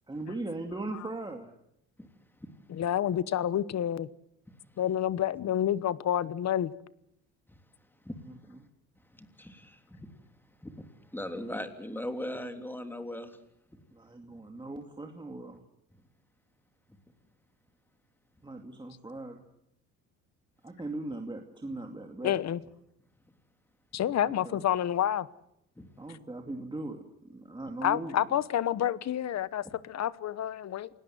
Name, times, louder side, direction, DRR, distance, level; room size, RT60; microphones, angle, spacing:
voice 1, 0.1-1.5 8.2-8.7 13.9-15.6 18.4-19.4 20.6-22.4 24.2-24.6 26.0-28.2, right 2 dB, 15° right, 3 dB, 2.4 m, -39 dB
voice 2, 2.7-4.1 4.8-6.7 22.2-22.6 23.9-25.3 27.8-30.9, left 10 dB, 50° left, 18 dB, 1.1 m, -29 dB
voice 3, 8.0-8.4 9.1-10.2 10.6-13.4 14.3-14.4 25.8-25.9, left 1 dB, 5° left, 7 dB, 3.3 m, -40 dB
28.0 x 18.5 x 7.9 m, 0.78 s
cardioid pair, 105°, 34 cm